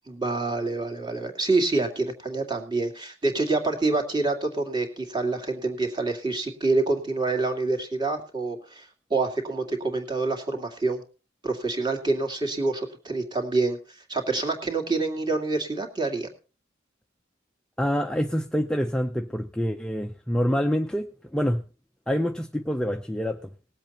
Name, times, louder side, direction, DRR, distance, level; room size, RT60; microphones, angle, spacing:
voice 1, 0.1-11.0 11.4-16.3, right 3 dB, 25° right, 3 dB, 2.4 m, -27 dB
voice 2, 17.8-21.1 21.3-21.6 22.1-23.5, equal, 5° left, 5 dB, 0.5 m, -26 dB
19.5 x 7.9 x 4.2 m, 0.34 s
head